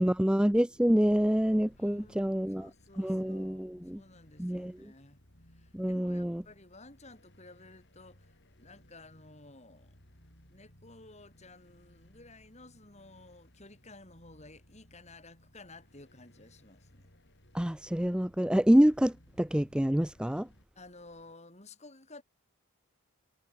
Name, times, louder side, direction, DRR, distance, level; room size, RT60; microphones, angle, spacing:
voice 1, 0.0-2.7 3.0-4.0 4.4-4.7 5.7-6.4 17.5-20.5, equal, 5° right, 0.4 m, -27 dB
sound 1, 0.7-20.6, equal, 50° left, 7.1 m, -61 dB
voice 2, 1.8-5.2 5.5-10.0 10.5-17.1 20.8-22.2, left 2 dB, 30° left, 4.1 m, -54 dB
head